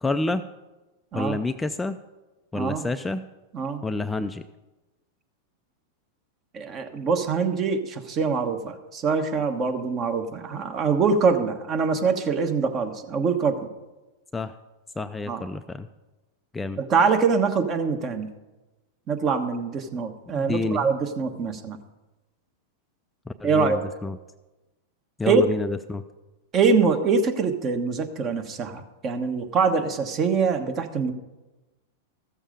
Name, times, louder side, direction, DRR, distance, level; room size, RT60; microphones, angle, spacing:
voice 1, 0.0-0.5 1.1-2.0 2.5-3.3 3.8-4.4 14.3-14.5 15.0-15.9 16.5-16.8 20.3-20.9 23.3-24.2 25.2-26.0, left 3 dB, 10° left, 9 dB, 0.4 m, -28 dB
voice 2, 6.5-13.7 15.3-15.4 16.8-18.3 19.1-21.8 23.4-23.8 25.3-25.5 26.5-31.1, right 5 dB, 35° right, 6 dB, 1.2 m, -24 dB
14.0 x 7.1 x 5.2 m, 1.1 s
hypercardioid pair, 100°, 0 cm